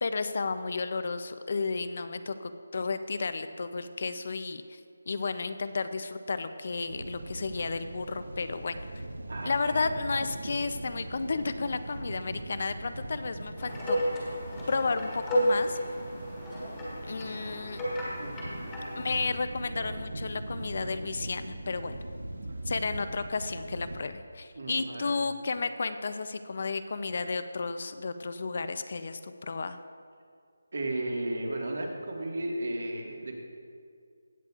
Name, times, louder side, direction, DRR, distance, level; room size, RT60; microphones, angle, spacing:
voice 1, 0.0-4.8 5.1-9.0 9.4-14.0 14.7-15.8 17.1-17.8 19.0-22.0 22.7-29.8, left 4 dB, 40° left, 10 dB, 0.4 m, -32 dB
sound 1, 6.9-24.1, right 1 dB, 90° right, 0.9 m, -41 dB
voice 2, 9.3-9.7 18.2-18.7 24.5-25.2 30.7-33.3, right 1 dB, 55° right, 1 dB, 1.6 m, -34 dB
sound 2, 13.6-19.2, equal, 10° left, 1.4 m, -32 dB
16.5 x 8.2 x 2.4 m, 2.2 s
figure-of-eight pair, 175°, 0 cm